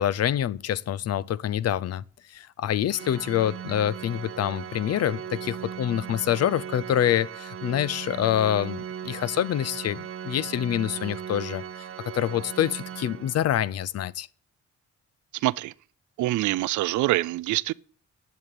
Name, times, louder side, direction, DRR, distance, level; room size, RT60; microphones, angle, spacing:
voice 1, 0.0-2.0 2.3-11.8 12.1-14.3, left 11 dB, 55° left, 0.6 m, -26 dB
Organ, 2.9-13.7, right 9 dB, 45° right, 0.8 m, -38 dB
voice 2, 15.3-15.7 16.2-17.7, right 17 dB, 75° right, 0.5 m, -25 dB
11.0 x 7.2 x 8.3 m
cardioid pair, 90°, 30 cm